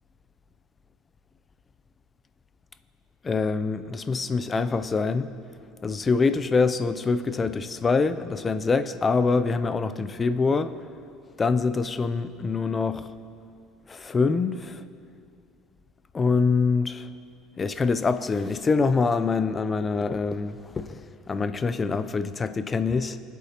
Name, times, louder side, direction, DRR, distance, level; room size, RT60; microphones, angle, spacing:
voice 1, 3.2-5.3 5.8-10.8 11.4-13.1 13.9-14.8 16.1-17.1 17.6-23.2, left 4 dB, 20° left, 13 dB, 0.4 m, -25 dB
24.0 x 8.3 x 2.9 m, 2.4 s
cardioid pair, 140°, 0 cm